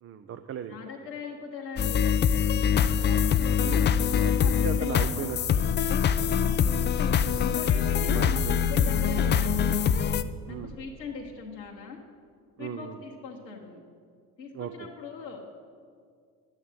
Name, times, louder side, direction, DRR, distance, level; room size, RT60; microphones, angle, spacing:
voice 1, 0.0-0.8 3.0-3.3 3.6-5.6 6.2-6.3 7.3-7.6 8.1-8.7 10.5-10.8 12.6-13.0 14.5-14.9, right 8 dB, 30° right, 9 dB, 0.6 m, -38 dB
voice 2, 0.7-2.1 2.6-3.4 4.4-5.3 6.2-6.6 7.4-9.8 10.4-12.0 12.6-13.8 14.4-15.5, left 4 dB, 90° left, 0 dB, 1.0 m, -40 dB
sound 1, 1.8-10.2, left 7 dB, 25° left, 0.4 m, -24 dB
10.5 x 8.6 x 7.8 m, 2.2 s
figure-of-eight pair, 55°, 49 cm